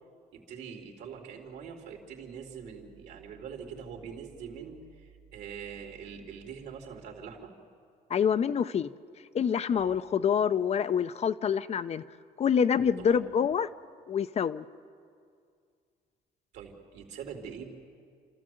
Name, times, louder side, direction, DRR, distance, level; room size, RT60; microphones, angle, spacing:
voice 1, 0.3-7.5 9.7-10.0 12.8-13.5 16.5-17.7, right 7 dB, 75° right, 2 dB, 3.2 m, -44 dB
voice 2, 8.1-8.9 9.3-12.0 12.4-13.7 14.1-14.6, left 7 dB, 40° left, 14 dB, 0.6 m, -26 dB
28.5 x 14.0 x 7.8 m, 2.2 s
cardioid pair, 110°, 17 cm